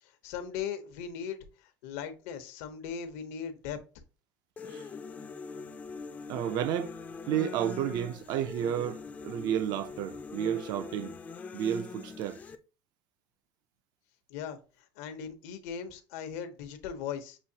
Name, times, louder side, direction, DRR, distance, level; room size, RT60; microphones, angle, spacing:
voice 1, 0.0-3.8 14.3-17.4, left 7 dB, 85° left, 0.9 m, -39 dB
sound 1, 4.6-12.5, left 4 dB, 20° left, 0.4 m, -42 dB
voice 2, 6.3-6.9 7.3-11.2 11.5-12.4, right 10 dB, 55° right, 0.4 m, -31 dB
6.1 x 2.6 x 2.8 m
cardioid pair, 150°, 8 cm